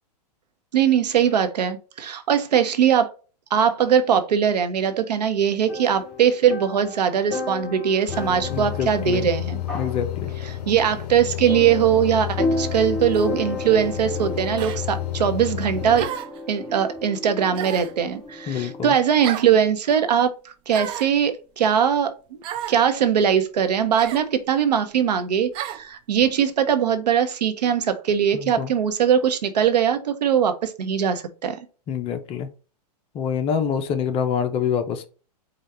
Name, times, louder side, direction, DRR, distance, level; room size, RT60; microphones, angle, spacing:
voice 1, 0.7-3.1 3.5-9.6 10.7-16.1 16.5-20.3 20.7-22.4 22.7-31.6, right 8 dB, 75° right, 0.9 m, -21 dB
sound 1, 5.7-18.9, left 2 dB, 5° left, 1.8 m, -33 dB
sound 2, 8.1-16.1, left 13 dB, 70° left, 0.6 m, -31 dB
voice 2, 8.5-9.3 9.7-10.3 18.5-18.9 28.3-28.7 31.9-32.5 33.1-35.1, left 7 dB, 25° left, 0.6 m, -26 dB
sound 3, 13.1-13.4 14.6-14.8 16.0-16.4 17.6-18.0 19.2-19.5 20.7-21.1 22.4-22.8 24.0-24.3 25.5-25.8, right 11 dB, 25° right, 0.4 m, -32 dB
5.0 x 2.4 x 4.2 m
hypercardioid pair, 125°, 21 cm